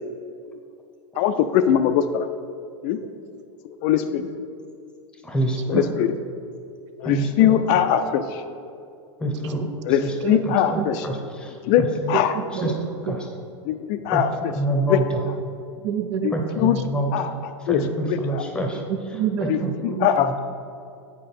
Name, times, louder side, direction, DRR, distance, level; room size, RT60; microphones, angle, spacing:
voice 1, 1.2-2.3 2.8-3.0 3.8-4.3 5.7-6.1 7.0-8.4 9.8-11.0 11.6-12.3 13.7-14.3 14.9-15.0 16.2-16.8 17.1-17.3 17.7-18.4 19.5-19.6 19.8-20.4, left 9 dB, 40° left, 9 dB, 0.4 m, -21 dB
voice 2, 5.2-5.9 7.0-7.6 9.2-10.1 10.4-12.1 12.5-13.3 14.1-15.2 16.3-17.3 17.6-18.8 19.6-19.7 20.2-20.4, right 1 dB, 5° left, 2 dB, 0.8 m, -27 dB
voice 3, 12.1-12.7 13.1-13.2 15.8-16.3 16.6-16.7 18.9-20.1, right 8 dB, 65° right, 9 dB, 0.6 m, -28 dB
8.3 x 5.1 x 4.3 m, 2.5 s
supercardioid pair, 135°, 16 cm